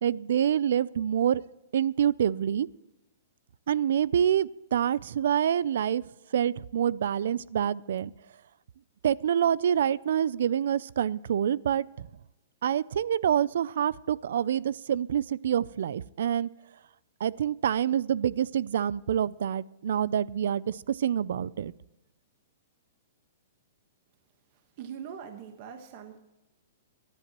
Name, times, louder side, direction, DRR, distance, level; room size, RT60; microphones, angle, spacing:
voice 1, 0.0-1.4 1.7-2.7 3.7-6.0 6.3-8.1 9.0-12.1 12.6-16.5 17.2-21.7, right 9 dB, 65° right, 21 dB, 0.4 m, -26 dB
voice 2, 24.8-26.2, right 8 dB, 35° right, 6 dB, 1.3 m, -42 dB
24.0 x 11.0 x 3.0 m, 0.98 s
hypercardioid pair, 170°, 0 cm